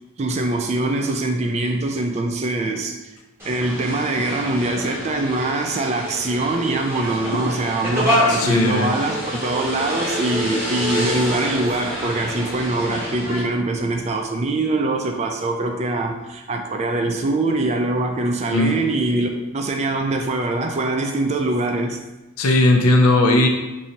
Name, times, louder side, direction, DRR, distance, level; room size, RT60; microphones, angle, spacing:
voice 1, 0.2-3.0 3.4-22.0, right 2 dB, 30° right, 3 dB, 0.3 m, -23 dB
sound 1, 3.4-13.4, left 1 dB, 10° right, 1.0 m, -27 dB
voice 2, 8.3-8.9 18.5-18.8 22.4-23.5, left 2 dB, 80° left, 2 dB, 0.5 m, -17 dB
4.5 x 2.7 x 2.7 m, 1.1 s
head